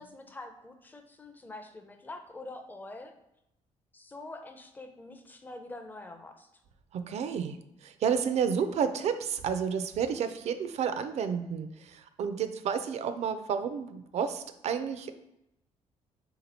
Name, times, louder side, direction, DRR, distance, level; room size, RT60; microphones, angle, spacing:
voice 1, 0.0-3.1 3.9-6.5, left 2 dB, 15° left, 6 dB, 0.5 m, -45 dB
voice 2, 6.9-15.1, right 7 dB, 60° right, 10 dB, 0.4 m, -31 dB
3.6 x 2.9 x 4.0 m, 0.85 s
cardioid pair, 115°, 13 cm